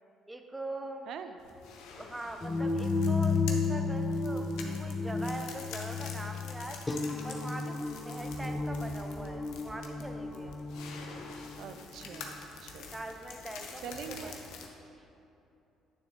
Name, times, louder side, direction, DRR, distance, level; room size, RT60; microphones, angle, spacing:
voice 1, 0.3-1.1 2.0-6.8 7.2-10.6 12.9-13.8 14.1-14.6 15.0-15.1, right 1 dB, 15° right, 5 dB, 0.7 m, -42 dB
sound 1, 1.4-14.7, left 5 dB, 75° left, 0.8 m, -47 dB
sound 2, 2.4-12.3, left 3 dB, 20° left, 0.5 m, -33 dB
voice 2, 11.6-13.0 13.8-14.4, right 7 dB, 65° right, 8 dB, 0.5 m, -44 dB
9.1 x 6.9 x 2.9 m, 2.8 s
supercardioid pair, 65°, 0 cm